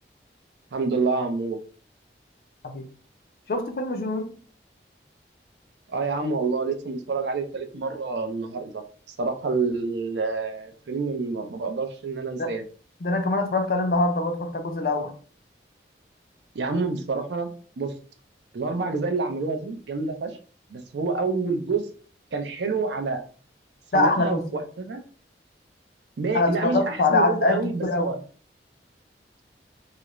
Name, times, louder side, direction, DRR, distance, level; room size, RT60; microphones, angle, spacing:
voice 1, 0.7-1.6 5.9-12.6 16.5-17.5 17.8-17.9 18.5-20.4 20.7-21.9 22.3-23.2 23.9-25.0 26.2-28.2, right 4 dB, 70° right, 0.4 m, -28 dB
voice 2, 3.5-4.3 12.4-12.5 13.0-15.1 23.9-24.5 26.3-28.1, left 2 dB, 55° left, 0.4 m, -24 dB
2.4 x 2.0 x 2.9 m
head